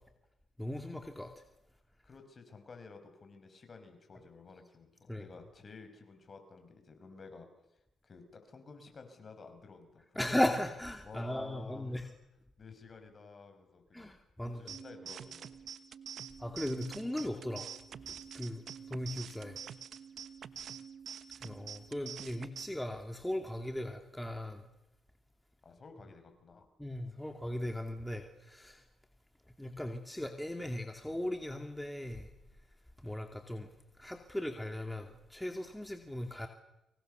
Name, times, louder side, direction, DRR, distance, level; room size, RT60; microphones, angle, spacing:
voice 1, 0.6-1.4 5.1-5.2 10.2-12.1 13.9-14.7 16.4-17.7 18.0-19.6 21.4-24.7 26.8-28.8 29.6-32.3 33.0-33.7 34.0-36.5, left 1 dB, 5° left, 5 dB, 2.6 m, -37 dB
voice 2, 2.0-10.4 11.0-12.1 12.6-14.1 14.4-15.7 20.5-20.8 25.6-26.7, left 4 dB, 45° left, 7 dB, 6.1 m, -53 dB
sound 1, 14.7-22.7, right 8 dB, 65° right, 1.2 m, -46 dB
30.0 x 25.5 x 6.9 m, 0.90 s
cardioid pair, 75°, 0 cm